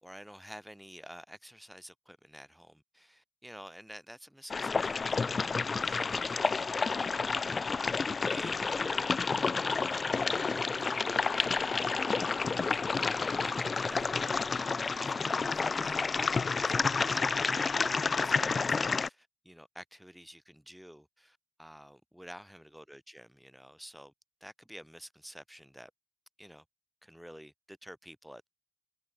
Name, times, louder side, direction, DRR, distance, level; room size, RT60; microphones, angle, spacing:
voice 1, 0.0-9.2 9.9-12.1 12.7-14.6 15.0-17.5 18.2-24.1 24.4-25.9 26.4-26.6 27.0-28.5, equal, ahead, 3.6 m, -51 dB
sound 1, 4.5-19.1, left 4 dB, 40° left, 0.5 m, -30 dB
hypercardioid pair, 40°, 0 cm